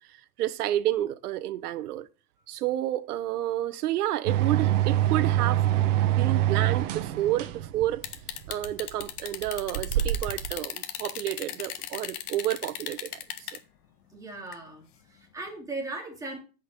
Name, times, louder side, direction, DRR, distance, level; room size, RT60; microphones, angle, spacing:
voice 1, 0.4-2.1 2.5-5.6 6.1-8.0 8.5-13.2, right 13 dB, 80° right, 1.1 m, -30 dB
sound 1, 4.3-10.5, right 13 dB, 55° right, 1.2 m, -26 dB
sound 2, 8.0-13.6 14.5-14.6, left 11 dB, 80° left, 1.6 m, -36 dB
voice 2, 14.1-16.4, right 2 dB, 5° right, 2.4 m, -38 dB
10.0 x 5.7 x 7.5 m
supercardioid pair, 165°, 45 cm